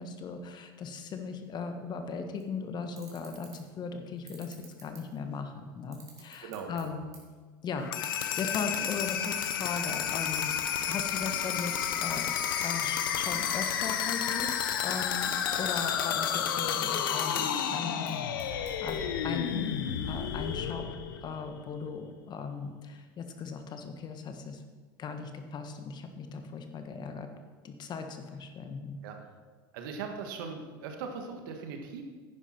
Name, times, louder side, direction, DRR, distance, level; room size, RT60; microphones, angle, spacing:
voice 1, 0.0-7.1 7.6-12.3 12.6-20.9 21.2-24.6 25.0-27.3 27.6-29.0, left 5 dB, 40° left, 6 dB, 1.4 m, -38 dB
sound 1, 2.3-2.5 2.9-3.8 4.2-5.4 5.8-7.4 7.6-9.1 9.5-9.6 9.9-10.1 10.4-11.8 12.1-13.1 13.5-14.1 14.4-14.5 14.8-14.9 15.4-15.5 15.9-16.4 16.9-17.2 17.8-18.9, right 4 dB, 30° right, 3.5 m, -53 dB
voice 2, 6.4-7.0 29.0-29.2 29.7-32.0, right 5 dB, 70° right, 4 dB, 1.6 m, -39 dB
sound 2, 7.8-21.6, left 8 dB, 80° left, 0.9 m, -31 dB
10.5 x 9.9 x 4.4 m, 1.5 s
hypercardioid pair, 85°, 11 cm